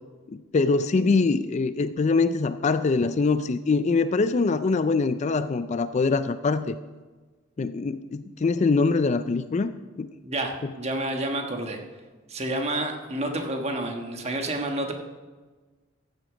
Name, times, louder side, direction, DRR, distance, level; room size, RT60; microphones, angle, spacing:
voice 1, 0.3-6.8 7.6-9.7 10.0-10.1 10.6-10.7, left 4 dB, 35° left, 12 dB, 0.3 m, -23 dB
voice 2, 10.2-11.8 12.3-14.9, right 1 dB, 30° right, 4 dB, 1.3 m, -29 dB
15.0 x 8.1 x 5.0 m, 1.3 s
head